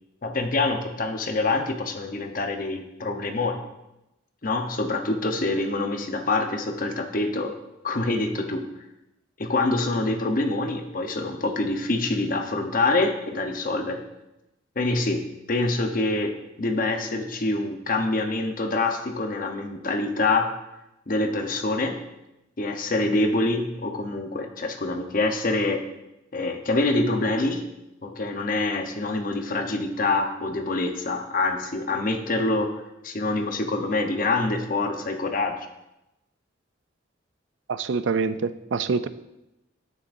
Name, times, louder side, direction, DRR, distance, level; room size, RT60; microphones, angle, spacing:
voice 1, 0.2-3.6 4.4-7.5 7.8-8.7 9.4-14.0 14.8-20.5 21.1-22.0 22.6-25.8 26.3-27.6 28.0-32.7 33.0-35.5, left 2 dB, 50° left, 5 dB, 0.9 m, -25 dB
voice 2, 37.7-39.1, right 5 dB, 75° right, 13 dB, 0.4 m, -25 dB
9.7 x 8.9 x 2.6 m, 0.93 s
head